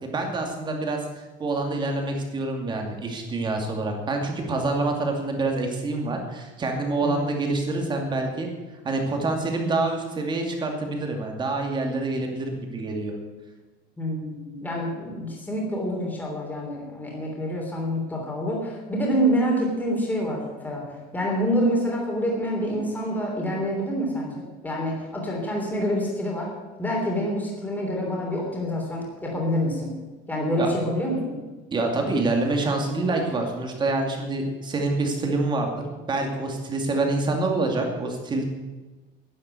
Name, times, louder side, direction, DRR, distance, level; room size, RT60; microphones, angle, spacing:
voice 1, 0.0-8.5 8.8-13.2 30.6-30.7 31.7-38.5, right 2 dB, 20° right, 2 dB, 2.4 m, -26 dB
voice 2, 7.0-7.3 14.0-20.8 21.1-26.5 26.8-29.9 30.3-31.4, equal, 10° left, -2 dB, 3.2 m, -27 dB
11.0 x 10.5 x 8.2 m, 1.2 s
cardioid pair, 170°, 21 cm